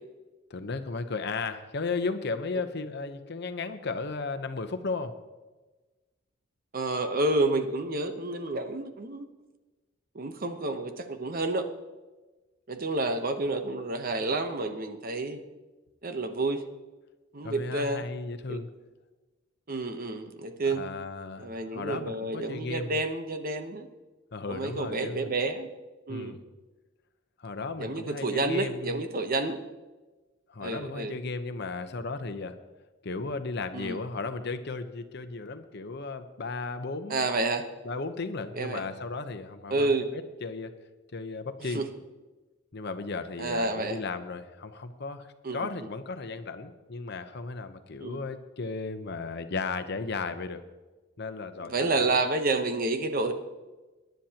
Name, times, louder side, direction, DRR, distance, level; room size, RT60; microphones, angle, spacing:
voice 1, 0.5-5.1 17.4-18.7 20.6-23.0 24.3-25.3 26.1-26.4 27.4-29.0 30.5-32.6 33.0-37.3 37.8-39.9 40.4-40.7 41.1-41.8 42.7-45.3 45.5-50.6 51.2-52.1, left 3 dB, 55° left, 9 dB, 0.9 m, -35 dB
voice 2, 6.7-9.3 10.1-11.7 12.7-15.4 16.0-16.6 17.3-18.0 18.5-18.6 19.7-20.8 21.4-23.9 24.5-25.7 26.1-26.4 27.8-29.6 30.6-31.2 33.7-34.0 37.1-37.7 38.5-38.9 39.7-40.1 41.6-41.9 43.4-44.0 45.4-45.7 48.0-48.2 51.6-53.3, right 2 dB, 45° right, 7 dB, 0.9 m, -29 dB
22.0 x 10.5 x 2.9 m, 1.2 s
head